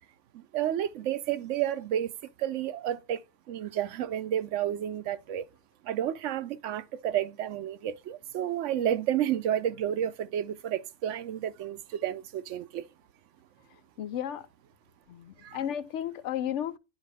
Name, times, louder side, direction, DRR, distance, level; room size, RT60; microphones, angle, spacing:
voice 1, 0.3-2.1 2.4-3.2 3.5-5.5 5.9-12.8 15.4-15.6, right 10 dB, 85° right, 1.0 m, -31 dB
voice 2, 14.0-14.5 15.1-16.8, left 10 dB, 75° left, 0.9 m, -33 dB
10.5 x 4.0 x 3.4 m
omnidirectional pair, 1.2 m